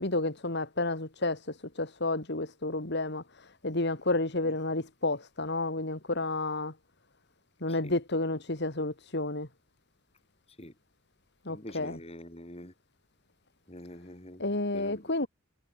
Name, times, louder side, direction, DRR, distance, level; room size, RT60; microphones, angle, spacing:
voice 1, 0.0-6.7 7.6-9.5 11.4-12.0 14.4-15.3, left 2 dB, 55° left, 2.8 m, -31 dB
voice 2, 11.5-12.7 13.7-15.3, left 1 dB, 30° left, 6.8 m, -46 dB
head